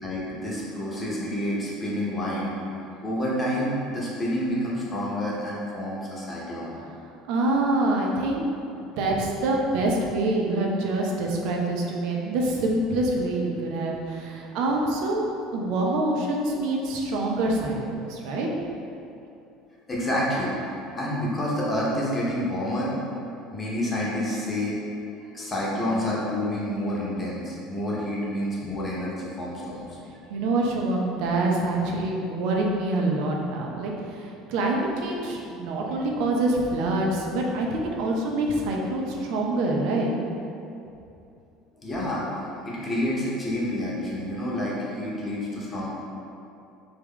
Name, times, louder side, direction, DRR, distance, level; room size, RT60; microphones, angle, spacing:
voice 1, 0.0-6.8 19.9-22.9 23.5-24.8 25.3-30.0 41.8-45.9, left 1 dB, 25° left, -6 dB, 0.9 m, -29 dB
voice 2, 7.3-8.5 8.8-15.3 15.5-18.5 30.3-40.1, right 2 dB, 60° right, -1 dB, 0.5 m, -26 dB
3.4 x 2.2 x 3.6 m, 2.7 s
figure-of-eight pair, 65°, 0 cm